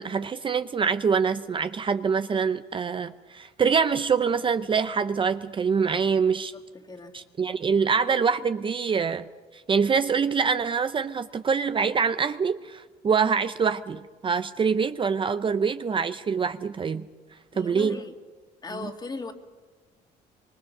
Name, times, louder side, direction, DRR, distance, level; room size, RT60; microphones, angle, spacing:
voice 1, 0.0-6.5 7.1-9.3 9.5-17.1 17.6-18.0, right 6 dB, 30° right, 10 dB, 0.6 m, -25 dB
voice 2, 6.5-7.2 17.5-18.2 18.6-19.3, left 3 dB, 25° left, 5 dB, 2.2 m, -38 dB
24.5 x 24.0 x 6.7 m, 1.3 s
cardioid pair, 110°, 17 cm